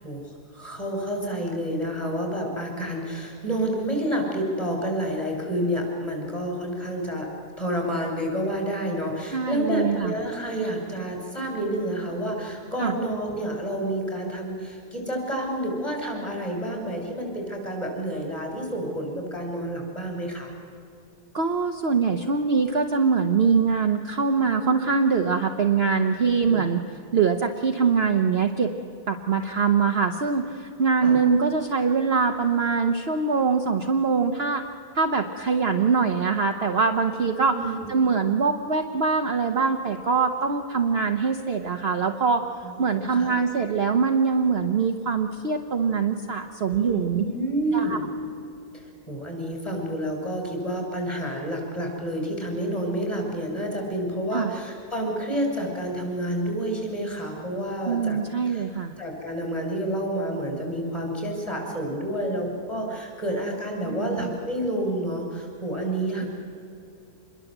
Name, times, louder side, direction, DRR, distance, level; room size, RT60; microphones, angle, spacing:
voice 1, 0.0-7.3 7.6-20.5 26.2-26.6 31.0-31.2 37.4-38.0 42.6-43.3 46.7-48.1 48.7-58.2 58.5-58.6 59.0-66.3, right 1 dB, 15° left, 0 dB, 6.6 m, -29 dB
voice 2, 9.3-10.1 12.8-12.9 21.3-26.8 27.1-28.7 29.1-34.6 34.9-37.6 37.9-42.4 42.8-47.2 47.7-48.0 54.3-54.5 57.9-58.9 63.9-64.2, right 5 dB, 45° right, 4 dB, 1.2 m, -23 dB
27.0 x 21.5 x 8.1 m, 2.6 s
omnidirectional pair, 1.7 m